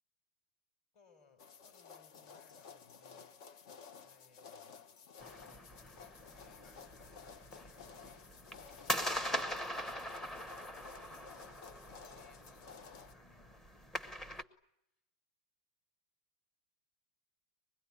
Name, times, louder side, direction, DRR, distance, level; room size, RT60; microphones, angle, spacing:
voice 1, 0.9-3.5 4.0-4.9 5.8-13.6, left 5 dB, 35° left, 9 dB, 4.5 m, -67 dB
sound 1, 1.4-13.1, left 6 dB, 55° left, 1.2 m, -54 dB
sound 2, 5.2-14.4, equal, 10° left, 1.0 m, -42 dB
25.5 x 21.0 x 9.8 m, 0.84 s
supercardioid pair, 165°, 3 cm